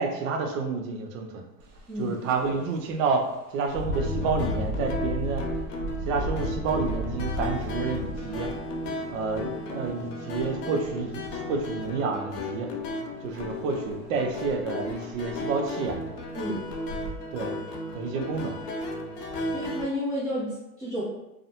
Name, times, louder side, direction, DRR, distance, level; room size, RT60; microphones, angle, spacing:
voice 1, 0.0-1.4 2.0-5.4 6.0-8.5 9.1-12.7 13.2-16.0 17.3-17.6 17.9-18.6, right 4 dB, 60° right, 3 dB, 0.6 m, -29 dB
Engine, 1.6-1.8 2.3-2.4 3.7-9.4 10.3-10.4 10.9-11.6 13.4-13.5 13.9-14.0 14.5-14.6 14.9-15.4 15.9-16.1 16.7-17.1, left 1 dB, 85° right, 0.9 m, -33 dB
voice 2, 1.9-2.2 16.3-16.7 19.5-21.0, equal, 10° right, -10 dB, 0.5 m, -31 dB
sound 1, 3.9-19.8, left 1 dB, 80° left, 0.7 m, -35 dB
2.4 x 2.1 x 2.7 m, 0.92 s
hypercardioid pair, 110°, 45 cm